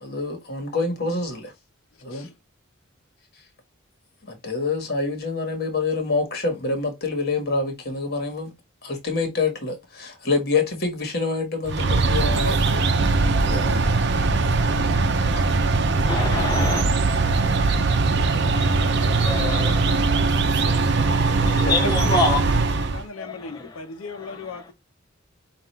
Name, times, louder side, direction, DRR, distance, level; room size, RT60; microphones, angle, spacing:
voice 1, 0.0-1.5 2.0-2.3 4.2-8.5 8.8-12.8 13.2-13.9 15.3-15.4, left 3 dB, 50° left, 1.6 m, -26 dB
sound 1, 11.7-23.0, right 3 dB, 55° right, 0.7 m, -21 dB
voice 2, 16.1-16.8 18.4-22.4 23.2-23.7, left 2 dB, 20° left, 0.5 m, -28 dB
voice 3, 21.6-22.6 22.9-24.7, left 3 dB, 85° left, 0.7 m, -34 dB
5.7 x 2.5 x 3.3 m
head